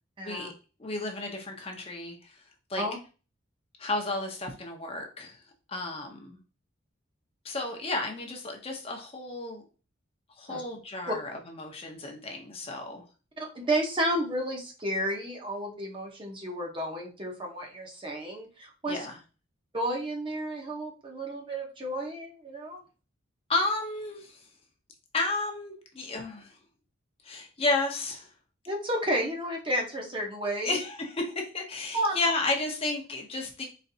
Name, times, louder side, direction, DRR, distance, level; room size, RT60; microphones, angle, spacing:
voice 1, 0.2-0.5 2.8-3.0 10.5-10.6 11.1-11.2 13.4-19.1 19.7-22.8 28.7-30.8 31.9-32.2, right 1 dB, 25° right, 1 dB, 0.8 m, -31 dB
voice 2, 0.8-2.3 2.7-2.8 3.8-5.4 5.7-6.4 7.4-9.6 10.4-13.0 18.8-19.2 23.5-24.4 25.1-26.5 27.2-28.3 30.6-33.6, left 2 dB, 30° left, 2 dB, 0.7 m, -32 dB
4.1 x 3.2 x 2.7 m, 0.34 s
head